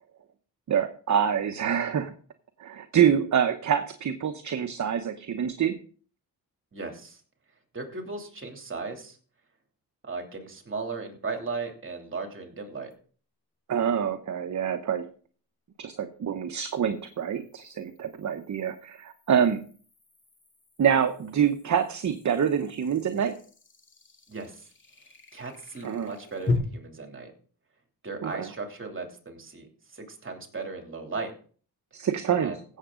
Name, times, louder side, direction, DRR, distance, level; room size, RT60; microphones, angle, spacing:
voice 1, 0.7-2.1 2.6-5.8 13.7-15.1 15.8-19.6 20.8-23.3 25.8-26.1 28.2-28.5 31.9-32.5, right 8 dB, 50° right, 7 dB, 1.0 m, -26 dB
voice 2, 6.7-7.2 7.7-9.2 10.0-12.9 24.3-24.7 25.3-27.3 28.0-31.3 32.4-32.6, right 4 dB, 35° right, 3 dB, 3.0 m, -36 dB
sound 1, 12.9-13.0 16.4-26.6, left 3 dB, 30° left, 2.3 m, -39 dB
16.0 x 7.3 x 3.8 m, 0.42 s
cardioid pair, 115°, 37 cm